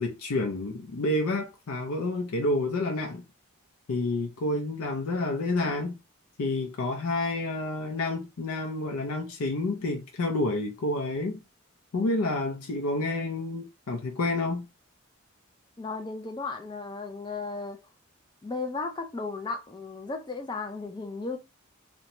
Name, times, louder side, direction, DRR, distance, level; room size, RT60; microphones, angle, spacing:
voice 1, 0.0-3.2 3.9-6.0 6.4-11.4 11.9-14.7, left 2 dB, 80° left, 0.5 m, -29 dB
voice 2, 15.8-17.8 18.4-21.4, left 3 dB, 20° left, 0.3 m, -35 dB
2.6 x 2.1 x 2.9 m
head